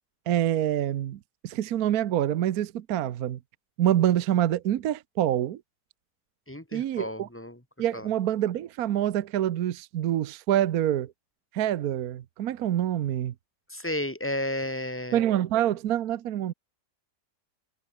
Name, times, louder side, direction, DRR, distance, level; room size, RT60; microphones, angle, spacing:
voice 1, 0.3-3.4 3.8-5.6 6.7-7.3 7.8-11.1 11.5-13.3 15.1-16.5, right 11 dB, 65° right, 1.2 m, -26 dB
voice 2, 6.5-7.6 7.9-8.1 13.7-15.2, left 1 dB, 5° left, 2.5 m, -32 dB
omnidirectional pair, 1.9 m